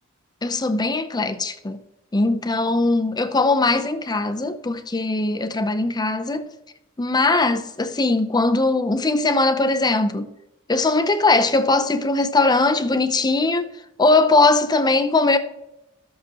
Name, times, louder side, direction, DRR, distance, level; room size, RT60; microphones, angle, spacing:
voice 1, 0.4-1.8 2.1-6.5 7.0-10.3 10.7-13.6 14.0-15.4, left 3 dB, 20° left, 0.6 m, -20 dB
12.5 x 7.5 x 2.9 m
head